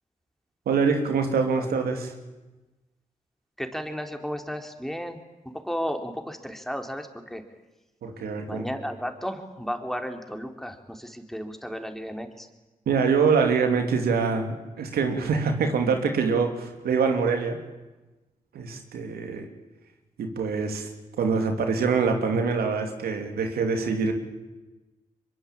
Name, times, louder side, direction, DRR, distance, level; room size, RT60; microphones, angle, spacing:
voice 1, 0.7-2.1 8.0-8.6 12.9-17.6 18.5-19.5 20.2-20.9 21.2-24.1, right 5 dB, 85° right, 5 dB, 3.1 m, -24 dB
voice 2, 3.6-5.2 5.6-7.4 8.5-12.5, equal, ahead, 5 dB, 4.1 m, -33 dB
23.0 x 22.5 x 9.0 m, 1.1 s
supercardioid pair, 45°, 16 cm